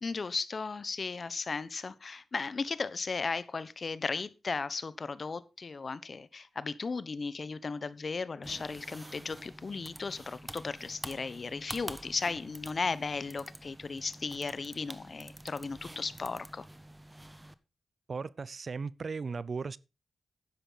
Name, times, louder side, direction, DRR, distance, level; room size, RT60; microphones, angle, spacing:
voice 1, 0.0-16.7, left 4 dB, 50° left, 1.1 m, -36 dB
sound 1, 8.4-17.5, right 1 dB, 15° right, 1.3 m, -47 dB
voice 2, 18.1-19.8, right 4 dB, 55° right, 0.5 m, -36 dB
12.0 x 10.0 x 4.1 m
supercardioid pair, 40°, 0 cm